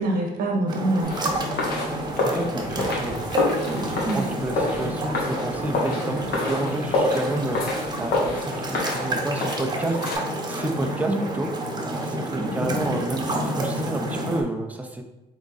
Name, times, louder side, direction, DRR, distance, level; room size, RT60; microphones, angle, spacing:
voice 1, 0.0-1.3 2.7-2.9 4.0-4.3 11.1-11.5 12.3-12.5, right 2 dB, 60° right, 2 dB, 1.1 m, -26 dB
sound 1, 0.7-14.4, right 1 dB, 25° right, 0.9 m, -29 dB
sound 2, 1.0-10.2, left 2 dB, 65° left, 1.3 m, -28 dB
voice 2, 2.2-3.2 3.7-7.6 8.0-10.0 10.5-11.5 11.9-15.0, right 1 dB, 10° right, 4 dB, 0.6 m, -30 dB
3.7 x 3.6 x 4.0 m, 1.0 s
cardioid pair, 110°, 17 cm